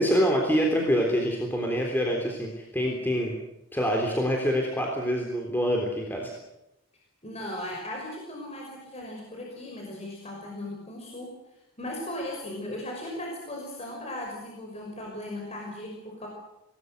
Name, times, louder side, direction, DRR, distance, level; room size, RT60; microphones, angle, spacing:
voice 1, 0.0-3.3 3.7-6.3, equal, 10° left, 0 dB, 3.6 m, -25 dB
voice 2, 7.2-11.4 11.8-16.3, left 1 dB, 30° left, 0 dB, 5.8 m, -37 dB
27.5 x 20.0 x 8.1 m, 0.88 s
head